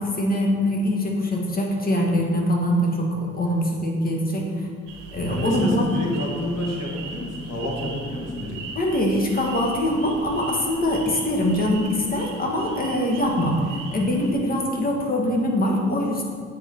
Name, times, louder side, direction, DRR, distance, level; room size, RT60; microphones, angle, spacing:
voice 1, 0.0-4.7 5.1-5.8 8.7-16.2, left 1 dB, 30° left, 0 dB, 1.5 m, -23 dB
sound 1, 4.9-14.3, right 4 dB, 85° right, 1.1 m, -39 dB
voice 2, 5.3-8.6 13.1-13.2, left 1 dB, 55° left, -2 dB, 2.0 m, -29 dB
7.7 x 5.3 x 4.5 m, 2.1 s
cardioid pair, 90°, 30 cm